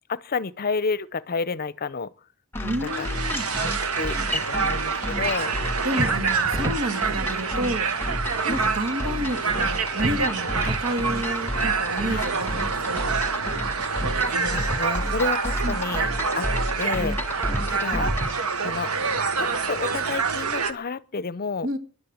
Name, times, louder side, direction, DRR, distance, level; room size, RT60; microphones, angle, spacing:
voice 1, 0.1-2.1 2.8-3.1 3.6-5.5 8.4-8.6 12.0-12.2 14.2-16.5 16.8-18.1 18.6-18.9 19.4-21.7, left 4 dB, 45° left, 0.6 m, -30 dB
sound 1, 2.5-18.4, equal, 10° left, 1.9 m, -31 dB
voice 2, 2.6-3.5 5.8-7.9 8.5-13.2 15.6-15.9 21.6-21.8, right 1 dB, 65° right, 2.0 m, -30 dB
sound 2, 2.9-20.7, right 5 dB, 85° right, 1.4 m, -27 dB
sound 3, 6.0-6.9 10.0-10.9 14.0-14.9 17.5-18.4, right 1 dB, 15° right, 0.7 m, -32 dB
11.5 x 10.0 x 9.3 m
head